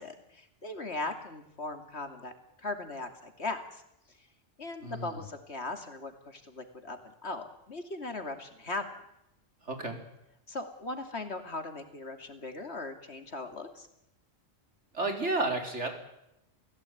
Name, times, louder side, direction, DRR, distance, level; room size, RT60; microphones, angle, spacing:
voice 1, 0.0-2.3 2.6-3.8 4.2-4.3 4.6-9.0 10.5-13.9, left 2 dB, 70° left, 7 dB, 3.0 m, -39 dB
voice 2, 4.8-5.2 9.6-10.0 14.9-15.9, right 2 dB, 80° right, 4 dB, 4.7 m, -31 dB
28.5 x 16.5 x 9.3 m, 0.85 s
omnidirectional pair, 1.2 m